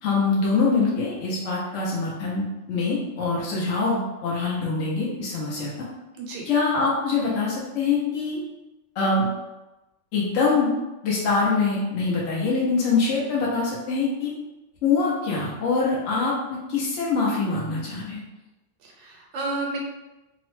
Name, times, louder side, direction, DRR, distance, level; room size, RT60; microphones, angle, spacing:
voice 1, 0.0-5.9 6.5-8.4 9.0-9.3 10.1-10.7 11.0-14.3 14.8-18.2, left 4 dB, 75° left, -5 dB, 1.0 m, -24 dB
voice 2, 18.8-19.8, right 2 dB, 70° right, 0 dB, 0.9 m, -31 dB
2.8 x 2.0 x 3.0 m, 1.0 s
omnidirectional pair, 1.3 m